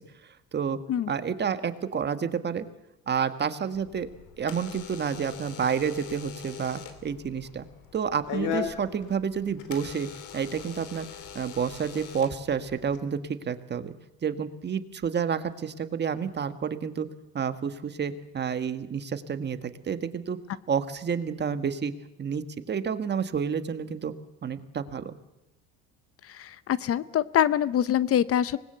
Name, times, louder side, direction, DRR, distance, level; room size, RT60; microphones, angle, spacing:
voice 1, 1.1-2.6 3.1-4.1 4.4-7.7 7.9-10.1 10.3-11.1 11.3-13.9 14.2-17.1 17.3-20.4 20.7-21.9 22.2-24.1 24.4-25.2, right 7 dB, 35° right, 10 dB, 1.6 m, -29 dB
Door / Alarm, 3.7-13.0, left 8 dB, 75° left, 3.1 m, -40 dB
voice 2, 26.3-28.6, left 10 dB, 45° left, 16 dB, 0.8 m, -25 dB
25.0 x 20.0 x 8.0 m, 0.91 s
cardioid pair, 115°, 31 cm